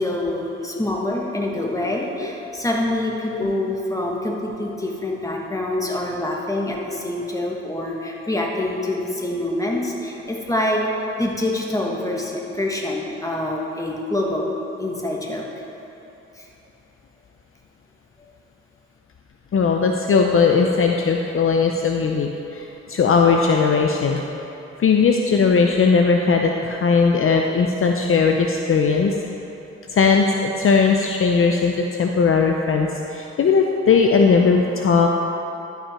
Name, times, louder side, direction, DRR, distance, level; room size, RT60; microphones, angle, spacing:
voice 1, 0.0-14.5 14.8-15.5 16.4-16.5, left 1 dB, 10° left, -1 dB, 1.4 m, -25 dB
voice 2, 19.5-24.2 24.8-29.1 29.9-35.1, left 5 dB, 50° left, 2 dB, 0.6 m, -18 dB
12.0 x 5.8 x 4.3 m, 3.0 s
cardioid pair, 70°, 29 cm